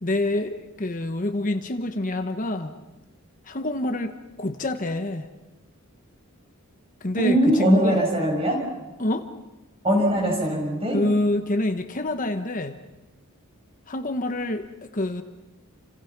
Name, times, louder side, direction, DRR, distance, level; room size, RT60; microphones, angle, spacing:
voice 1, 0.0-2.7 3.5-5.3 7.0-8.0 9.0-9.3 10.9-12.8 13.9-15.2, left 1 dB, 35° left, 7 dB, 1.1 m, -27 dB
voice 2, 7.2-8.6 9.8-11.0, right 1 dB, 25° right, 1 dB, 7.0 m, -21 dB
29.5 x 26.5 x 6.0 m, 1.1 s
head